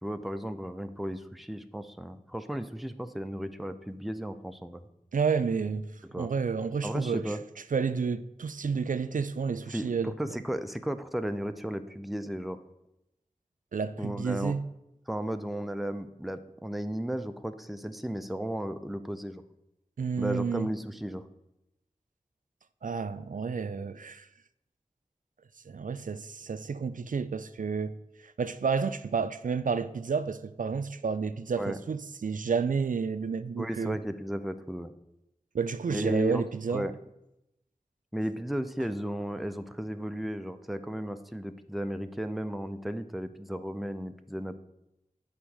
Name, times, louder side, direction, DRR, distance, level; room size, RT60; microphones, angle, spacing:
voice 1, 0.0-4.8 6.0-6.3 6.8-7.4 9.7-12.6 14.0-14.5 15.1-19.4 20.2-21.3 31.6-31.8 33.6-34.9 35.9-36.4 36.7-36.9 38.1-44.6, equal, ahead, 0.5 m, -34 dB
voice 2, 5.1-5.9 6.1-7.3 7.7-10.1 13.7-14.6 20.0-20.7 22.8-24.3 25.7-34.0 35.5-36.9, right 5 dB, 70° right, 0.4 m, -30 dB
8.1 x 3.5 x 6.1 m
wide cardioid pair, 45°, 14 cm